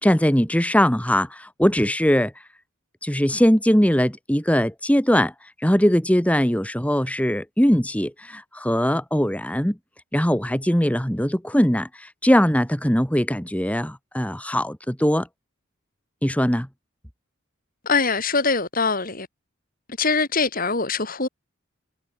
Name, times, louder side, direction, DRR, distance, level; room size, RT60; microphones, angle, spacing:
voice 1, 0.0-2.3 3.0-9.8 10.1-15.3 16.2-16.7, equal, 5° left, 2.3 m, -21 dB
voice 2, 17.9-19.3 20.0-21.3, left 4 dB, 45° left, 4.5 m, -23 dB
head